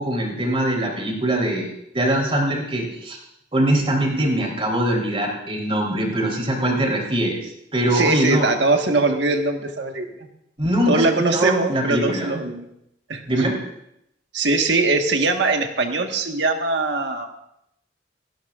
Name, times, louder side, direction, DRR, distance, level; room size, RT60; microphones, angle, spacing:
voice 1, 0.0-3.2 3.5-8.5 10.6-12.3 13.3-13.6, right 1 dB, 30° right, 0 dB, 3.5 m, -22 dB
voice 2, 7.8-10.3 10.9-12.7 13.1-13.4 14.3-17.3, right 3 dB, 80° right, 4 dB, 1.4 m, -21 dB
28.0 x 11.5 x 2.5 m, 0.79 s
head